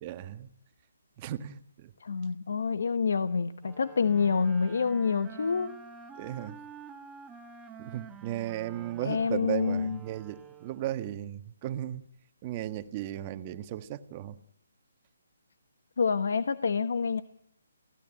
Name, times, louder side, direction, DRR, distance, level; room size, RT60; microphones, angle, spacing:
voice 1, 0.0-0.5 1.2-1.9 6.1-6.6 7.8-12.0 12.4-14.4, right 12 dB, 30° right, 10 dB, 1.4 m, -36 dB
voice 2, 2.0-5.8 9.0-10.0 16.0-17.2, left 5 dB, 70° left, 12 dB, 1.1 m, -27 dB
sound 1, 3.6-11.1, right 6 dB, 10° right, 1.3 m, -48 dB
29.5 x 17.5 x 8.9 m, 0.71 s
hypercardioid pair, 155°, 0 cm